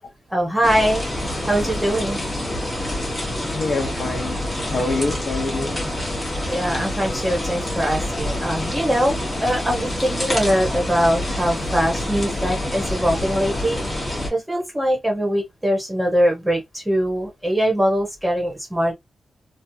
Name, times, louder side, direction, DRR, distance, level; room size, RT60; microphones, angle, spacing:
voice 1, 0.3-2.2 6.5-13.8 14.3-18.9, equal, 10° right, 1.3 m, -22 dB
sound 1, 0.6-14.3, left 1 dB, 20° left, 1.4 m, -27 dB
voice 2, 3.3-4.4 4.7-5.8, left 3 dB, 55° left, 0.7 m, -26 dB
3.1 x 2.4 x 2.8 m
cardioid pair, 100°, 0 cm